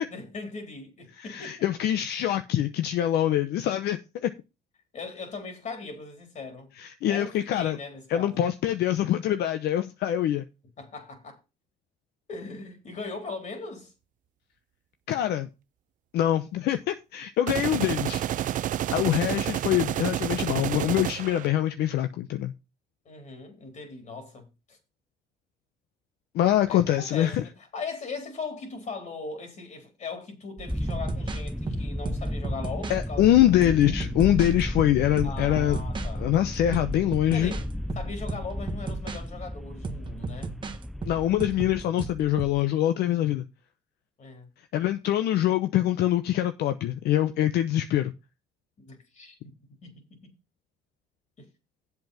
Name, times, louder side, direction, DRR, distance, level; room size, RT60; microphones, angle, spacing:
voice 1, 0.0-1.7 4.9-6.7 7.1-8.5 10.8-11.4 12.3-13.9 23.1-24.8 26.7-34.1 35.2-36.3 37.3-37.6 38.0-40.5 44.2-44.5 48.8-49.5 49.8-50.3 51.4-51.5, left 4 dB, 45° left, 3.8 m, -39 dB
voice 2, 1.2-4.3 6.8-7.8 8.1-10.4 15.1-15.5 16.1-18.6 18.9-22.5 26.3-27.4 32.9-35.8 36.2-37.5 41.1-43.5 44.7-48.1, left 12 dB, 75° left, 0.8 m, -24 dB
sound 1, 17.5-21.5, right 12 dB, 50° right, 0.5 m, -29 dB
sound 2, 30.6-33.0 33.6-36.1 36.5-39.2 39.8-42.6, right 4 dB, 30° right, 1.3 m, -36 dB
sound 3, 30.7-41.8, left 1 dB, ahead, 0.5 m, -33 dB
8.0 x 7.1 x 5.6 m
cardioid pair, 110°, 17 cm